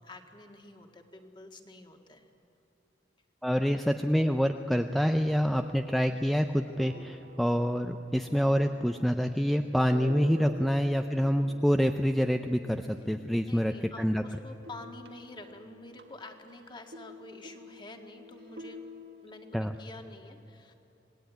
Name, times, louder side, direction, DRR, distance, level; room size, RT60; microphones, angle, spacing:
voice 1, 0.0-2.3 13.4-18.8 19.2-20.7, left 2 dB, 25° left, 4 dB, 1.9 m, -48 dB
voice 2, 3.4-14.2 19.5-19.7, equal, ahead, 6 dB, 0.5 m, -27 dB
sound 1, 4.2-14.2 14.5-19.7, equal, 65° right, 1.7 m, -49 dB
26.0 x 18.5 x 9.3 m, 2.9 s
head